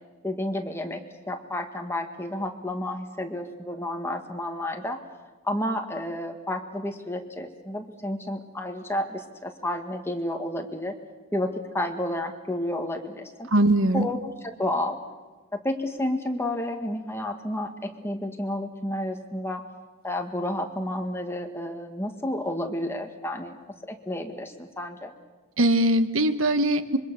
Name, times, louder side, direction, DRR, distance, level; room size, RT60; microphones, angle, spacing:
voice 1, 0.2-5.0 5.4-11.0 11.3-13.5 13.9-15.0 15.5-19.6 20.0-23.6 23.9-25.1, left 1 dB, 10° left, 4 dB, 1.9 m, -31 dB
voice 2, 13.5-14.1 25.6-27.0, right 1 dB, 85° right, 11 dB, 1.3 m, -21 dB
26.0 x 24.0 x 7.0 m, 1.3 s
head